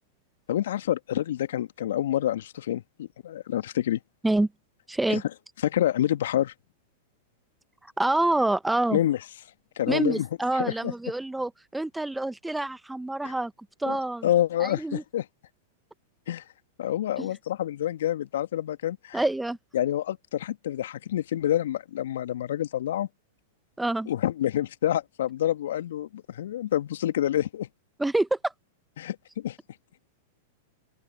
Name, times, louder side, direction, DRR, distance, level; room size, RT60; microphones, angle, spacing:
voice 1, 0.5-4.0 5.1-5.2 5.6-6.5 8.9-9.2 9.8-10.3 10.5-10.9 13.2-13.3 13.9-14.0 14.2-15.3 16.3-16.4 16.8-19.2 19.7-23.1 24.1-27.7 29.0-29.6, left 12 dB, 65° left, 1.8 m, -27 dB
voice 2, 4.9-5.2 8.0-9.0 9.9-13.5 13.8-14.3 14.6-15.0 17.2-17.3 19.1-19.6 23.8-24.1 28.0-28.5, right 2 dB, 5° right, 1.2 m, -26 dB
open air
figure-of-eight pair, 100°, 0 cm